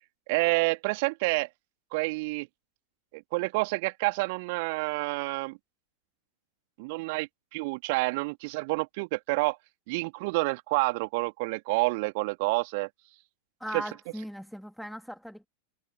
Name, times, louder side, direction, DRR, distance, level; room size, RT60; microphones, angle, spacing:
voice 1, 0.3-1.5 1.9-2.5 3.1-5.6 6.8-9.6 9.9-12.9 13.7-13.8, right 26 dB, 50° right, 3.2 m, -28 dB
voice 2, 13.6-15.5, equal, ahead, 2.8 m, -39 dB
figure-of-eight pair, 90°, 0 cm